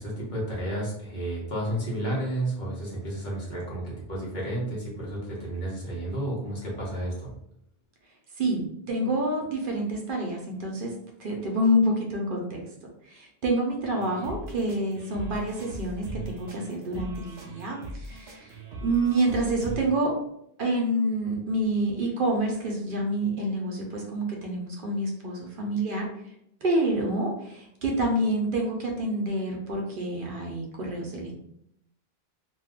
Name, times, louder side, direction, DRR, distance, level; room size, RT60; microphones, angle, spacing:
voice 1, 0.0-7.3, right 1 dB, 50° left, -5 dB, 1.1 m, -31 dB
voice 2, 8.4-10.9 11.2-12.6 13.0-20.1 20.6-26.1 26.6-31.4, right 1 dB, 60° right, 0 dB, 0.7 m, -28 dB
sound 1, 13.9-19.8, right 2 dB, 85° right, 1.0 m, -40 dB
2.6 x 2.3 x 3.5 m, 0.75 s
omnidirectional pair, 1.0 m